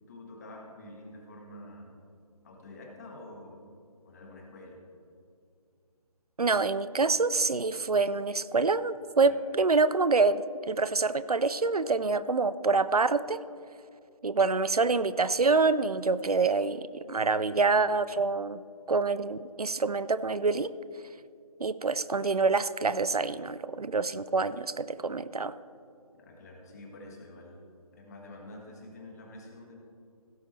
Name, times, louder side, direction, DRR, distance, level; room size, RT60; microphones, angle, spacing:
voice 1, 0.1-1.9 2.4-3.7 4.0-4.8 9.2-9.4 26.2-27.7 27.9-29.8, left 1 dB, 25° left, 0 dB, 1.5 m, -47 dB
voice 2, 6.4-13.4 14.2-18.6 18.9-20.7 21.6-25.5, right 4 dB, 80° right, 15 dB, 0.5 m, -26 dB
16.5 x 7.7 x 3.2 m, 2.4 s
figure-of-eight pair, 150°, 19 cm